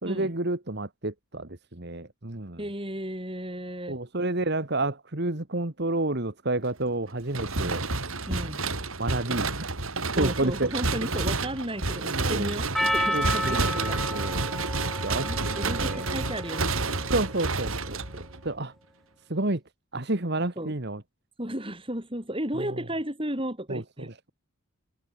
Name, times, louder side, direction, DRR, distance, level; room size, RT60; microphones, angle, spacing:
voice 1, 0.0-2.6 3.9-7.8 9.0-9.7 10.2-10.7 12.1-12.5 13.1-14.5 15.0-16.1 17.1-18.7 19.3-19.6 19.9-21.0 22.6-22.7 23.7-24.3, right 2 dB, 50° right, 1.8 m, -30 dB
voice 2, 2.6-4.0 7.6-7.8 8.3-8.7 10.2-14.3 15.2-17.1 20.6-20.7 21.4-24.1, right 1 dB, 25° right, 6.5 m, -34 dB
sound 1, 7.3-18.5, right 3 dB, 75° right, 4.7 m, -30 dB
Percussion, 12.7-17.3, equal, ahead, 1.1 m, -32 dB
head